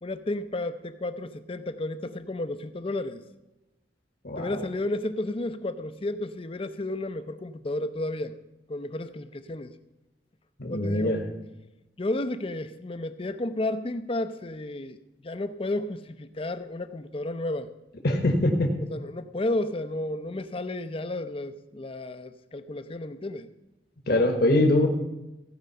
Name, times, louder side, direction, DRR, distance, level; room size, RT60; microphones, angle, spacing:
voice 1, 0.0-3.2 4.4-8.3 8.7-9.7 10.7-11.2 12.0-15.0 15.2-17.7 18.9-23.5, left 2 dB, 30° left, 11 dB, 0.6 m, -32 dB
voice 2, 4.2-4.7 10.6-11.2 18.0-18.7 24.1-24.9, left 1 dB, 55° left, 2 dB, 1.4 m, -23 dB
15.5 x 5.2 x 6.7 m, 0.98 s
head